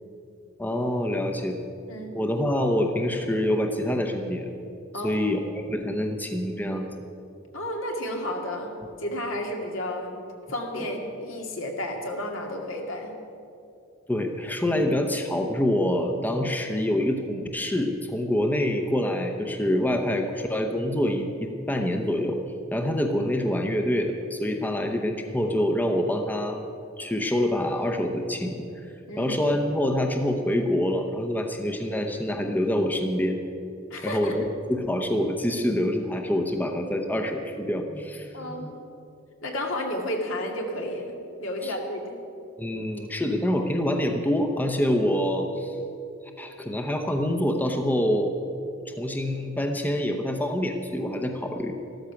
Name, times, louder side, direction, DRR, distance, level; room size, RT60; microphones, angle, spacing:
voice 1, 0.6-1.6 2.1-4.5 5.0-6.9 14.1-22.4 22.7-26.6 27.0-28.7 29.2-33.4 34.0-38.7 41.6-41.7 42.6-45.8 46.4-48.3 48.9-51.7, left 1 dB, 10° left, 3 dB, 0.8 m, -26 dB
voice 2, 4.9-5.3 7.5-10.2 10.5-13.1 14.7-14.8 29.1-29.4 33.9-34.4 38.3-38.8 39.4-42.2, left 1 dB, 80° left, 2 dB, 2.1 m, -32 dB
13.5 x 13.5 x 5.9 m, 2.7 s
head